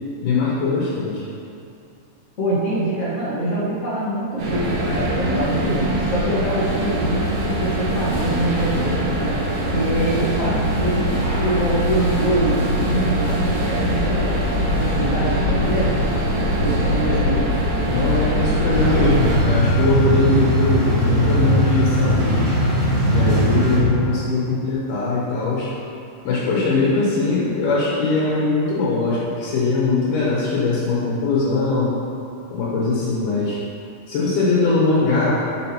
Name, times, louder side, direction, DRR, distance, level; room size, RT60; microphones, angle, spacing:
voice 1, 0.2-1.2 17.1-17.2 17.9-22.5 23.1-25.7 26.2-31.9 32.5-33.6 34.1-35.4, left 3 dB, 80° left, -6 dB, 2.6 m, -21 dB
voice 2, 2.4-9.1 9.7-16.0 16.6-17.4, right 1 dB, 45° left, -9 dB, 1.0 m, -24 dB
sound 1, 4.4-19.4, equal, 85° right, 2.9 m, -22 dB
sound 2, 18.7-23.8, right 1 dB, 55° right, 1.7 m, -19 dB
6.4 x 5.5 x 4.4 m, 2.6 s
omnidirectional pair, 3.6 m